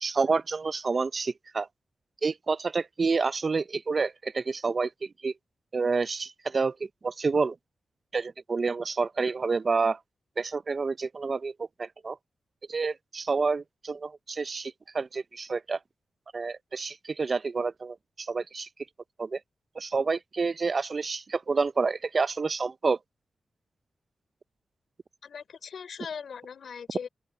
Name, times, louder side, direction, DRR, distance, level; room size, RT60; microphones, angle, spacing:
voice 1, 0.0-1.7 2.2-4.9 5.2-5.3 5.7-6.7 7.0-7.5 8.1-10.0 10.4-11.5 11.8-12.2 12.7-15.8 16.3-17.9 18.3-18.7 19.2-19.4 19.8-23.0, right 4 dB, 50° right, 0.5 m, -28 dB
voice 2, 25.2-27.1, left 6 dB, 75° left, 3.3 m, -40 dB
open air
cardioid pair, 65°, 0 cm